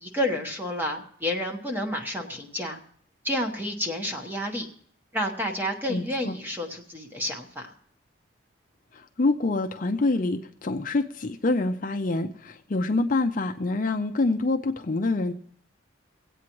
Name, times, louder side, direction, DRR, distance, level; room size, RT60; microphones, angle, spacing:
voice 1, 0.0-2.8 3.2-4.7 5.1-7.7, left 1 dB, 10° right, 3 dB, 1.2 m, -30 dB
voice 2, 5.9-6.4 8.9-15.3, left 2 dB, 40° left, 5 dB, 0.5 m, -26 dB
24.5 x 8.5 x 3.0 m, 0.63 s
head